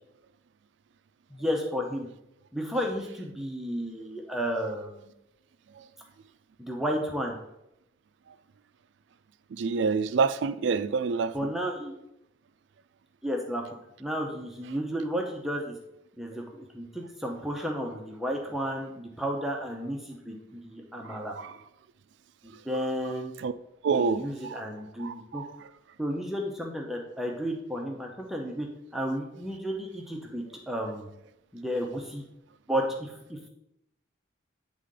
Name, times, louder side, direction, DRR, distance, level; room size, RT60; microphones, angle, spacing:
voice 1, 1.3-2.1 2.5-5.1 6.6-7.4 11.3-11.9 13.2-13.6 14.0-15.7 16.2-21.3 22.4-23.3 24.0-25.4 26.0-28.7 28.9-31.1 31.5-32.2 32.7-33.5, equal, ahead, 0 dB, 0.6 m, -32 dB
voice 2, 9.5-11.3 21.0-21.5 23.4-23.5 23.8-24.6 25.0-25.5, right 5 dB, 65° right, 13 dB, 0.3 m, -28 dB
9.2 x 3.7 x 3.8 m, 0.84 s
head